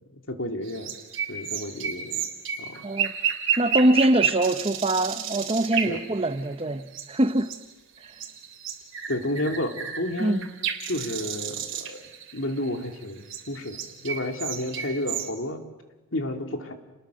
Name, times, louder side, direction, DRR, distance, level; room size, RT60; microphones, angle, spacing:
voice 1, 0.3-0.9 1.3-2.3 2.6-2.9 5.8-6.0 9.1-10.5 10.9-12.0 12.3-13.8 14.0-15.6 16.1-16.7, left 1 dB, 65° left, 2.7 m, -31 dB
sound 1, 0.6-7.7 8.0-15.3, right 8 dB, 60° right, 3.0 m, -32 dB
voice 2, 3.6-7.5 10.2-10.4, right 1 dB, 25° right, 0.9 m, -23 dB
30.0 x 20.5 x 6.4 m
head